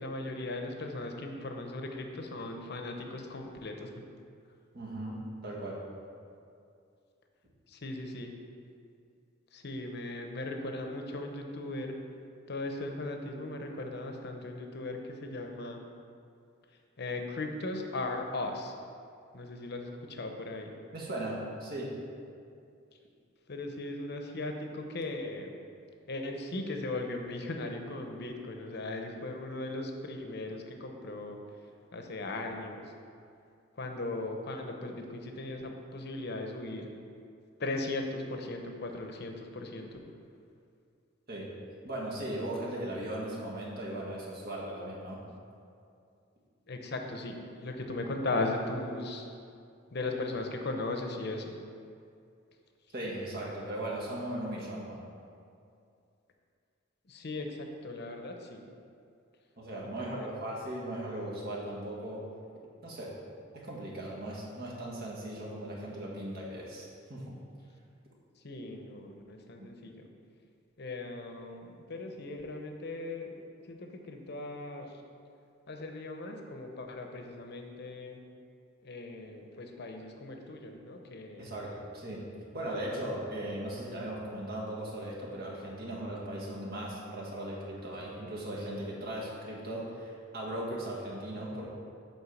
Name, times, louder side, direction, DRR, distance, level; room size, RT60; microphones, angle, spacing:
voice 1, 0.0-3.9 7.7-8.3 9.5-11.9 12.5-15.8 17.0-18.7 19.3-20.7 23.5-25.5 26.1-31.4 31.9-32.9 33.7-36.9 37.6-40.0 46.7-49.3 49.9-51.6 57.1-58.6 59.8-60.4 68.4-70.1 70.8-73.3 73.6-75.0 75.7-78.2 78.8-81.5 82.5-82.7, left 2 dB, 55° left, 4 dB, 0.8 m, -38 dB
voice 2, 4.7-5.8 20.9-21.9 41.3-41.5 41.8-45.2 52.9-55.0 59.6-62.2 62.8-63.1 63.5-67.4 81.4-82.2 82.5-91.7, right 1 dB, 50° right, -4 dB, 1.8 m, -38 dB
8.9 x 3.9 x 7.0 m, 2.4 s
head